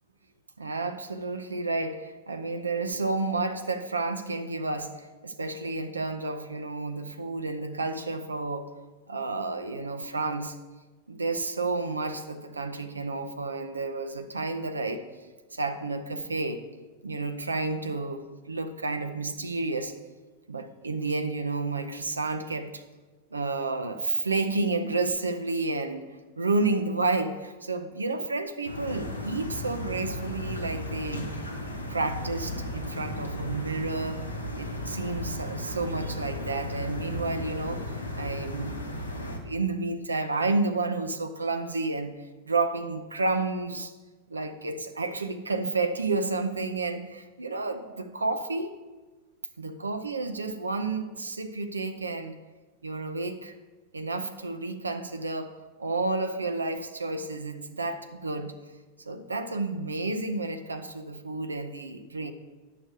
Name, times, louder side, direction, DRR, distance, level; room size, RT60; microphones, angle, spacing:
voice 1, 0.6-8.7 9.1-10.6 11.1-15.0 15.5-16.6 17.0-19.9 20.5-22.8 23.3-26.1 26.4-31.3 31.9-34.2 34.5-37.8 38.2-38.8 39.1-42.1 42.4-43.9 44.3-48.7 49.6-52.4 52.8-53.5 53.9-55.5 55.8-58.5 59.0-62.3, right 3 dB, 75° right, 8 dB, 0.6 m, -31 dB
sound 1, 28.6-39.4, left 1 dB, 85° left, 1.1 m, -35 dB
11.0 x 6.7 x 5.1 m, 1.3 s
figure-of-eight pair, 90°, 0 cm